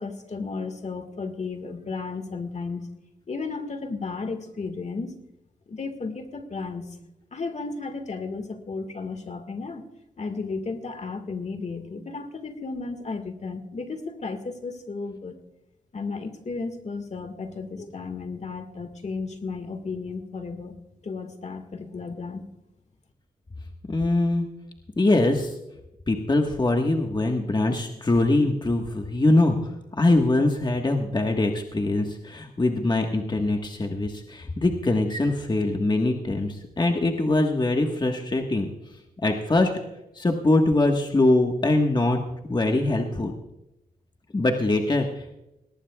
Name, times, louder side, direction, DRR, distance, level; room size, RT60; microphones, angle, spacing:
voice 1, 0.0-2.9 3.3-5.2 5.7-7.0 7.3-9.8 10.2-15.3 15.9-20.7 21.0-22.4, left 4 dB, 45° left, 8 dB, 1.8 m, -34 dB
voice 2, 23.9-24.5 25.0-25.5 26.1-29.7 30.0-38.7 39.2-39.7 40.1-43.3 44.3-45.4, left 2 dB, 30° left, 3 dB, 1.5 m, -23 dB
19.0 x 18.0 x 2.4 m, 0.89 s
cardioid pair, 60°, 16 cm